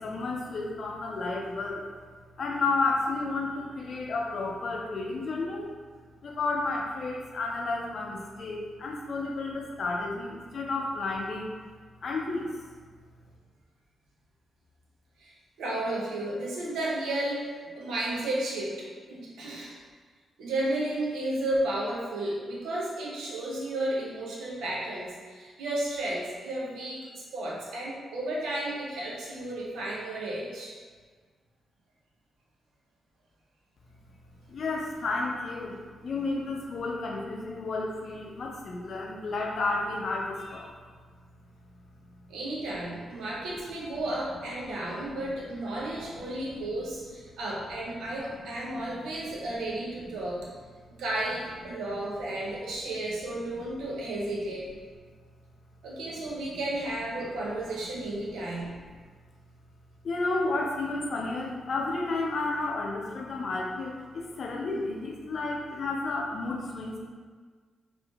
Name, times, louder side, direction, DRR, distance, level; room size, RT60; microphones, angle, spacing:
voice 1, 0.0-1.9 2.4-5.7 6.2-11.5 12.0-12.7 34.5-40.7 45.1-45.3 46.5-46.6 48.1-48.4 48.7-49.2 56.3-56.4 58.5-58.6 60.0-67.0, left 3 dB, 60° left, -1 dB, 0.5 m, -32 dB
voice 2, 15.6-19.8 20.4-30.7 42.3-50.4 51.0-54.6 55.8-58.7, right 1 dB, 75° right, -4 dB, 0.6 m, -33 dB
3.6 x 2.5 x 2.3 m, 1.5 s
hypercardioid pair, 40°, 0 cm